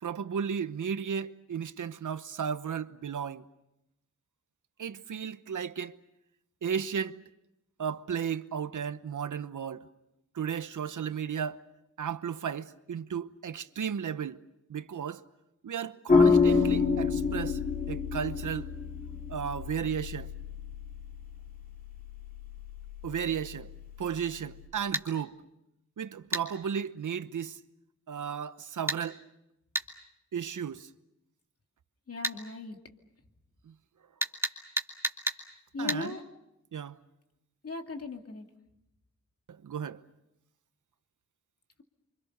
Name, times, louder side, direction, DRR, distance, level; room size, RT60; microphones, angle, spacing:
voice 1, 0.0-3.4 4.8-5.9 6.6-7.2 7.8-9.9 10.3-11.6 12.0-14.4 14.7-15.2 15.6-17.6 17.9-18.7 19.3-20.3 23.0-23.7 24.0-25.4 26.0-27.6 28.1-29.2 30.3-30.9 33.7-33.8 35.8-36.2 36.7-36.9 39.6-40.0, right 7 dB, 80° right, 1.0 m, -34 dB
sound 1, 16.1-24.6, left 5 dB, 30° left, 2.5 m, -29 dB
sound 2, 24.9-25.1 26.3-26.5 28.9-29.0 29.7-29.9 32.2-32.4 34.2-35.4 35.9-36.0, right 1 dB, 10° right, 2.3 m, -30 dB
voice 2, 32.1-32.8 35.7-36.2 37.6-38.4, left 3 dB, 50° left, 2.5 m, -37 dB
28.5 x 25.5 x 6.7 m
wide cardioid pair, 125°, 30 cm